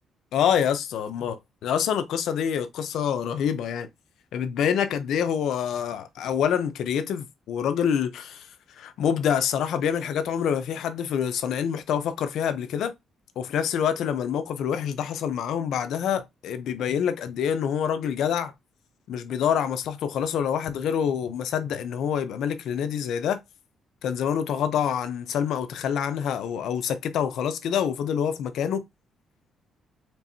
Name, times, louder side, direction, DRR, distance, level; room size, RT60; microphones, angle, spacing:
voice 1, 0.3-3.9 4.3-8.5 8.8-12.9 13.4-18.5 19.1-23.4 24.0-28.8, left 8 dB, 75° left, 0.7 m, -26 dB
4.6 x 3.3 x 2.7 m
cardioid pair, 90°, 0 cm